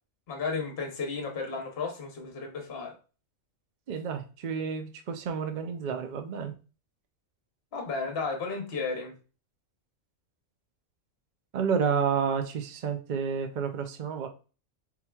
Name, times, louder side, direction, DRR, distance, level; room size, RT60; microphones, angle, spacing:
voice 1, 0.3-2.9 7.7-9.1, left 4 dB, 50° left, 4 dB, 1.1 m, -33 dB
voice 2, 3.9-6.5 11.5-14.3, right 6 dB, 60° right, 6 dB, 0.5 m, -30 dB
4.4 x 3.7 x 2.3 m, 0.34 s
omnidirectional pair, 1.4 m